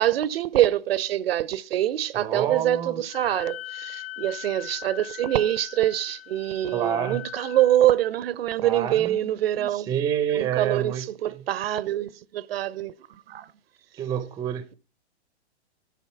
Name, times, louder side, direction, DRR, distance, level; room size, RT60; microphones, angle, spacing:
voice 1, 0.0-9.9 10.4-12.9 13.3-13.5, right 13 dB, 60° right, 0.6 m, -25 dB
voice 2, 2.2-3.0 6.7-7.2 8.6-9.3 9.6-11.0 14.0-14.6, right 9 dB, 10° right, 0.5 m, -28 dB
Wind instrument woodwind instrument, 3.1-7.8, left 14 dB, 40° left, 0.7 m, -40 dB
12.0 x 4.0 x 5.6 m
hypercardioid pair, 130°, 34 cm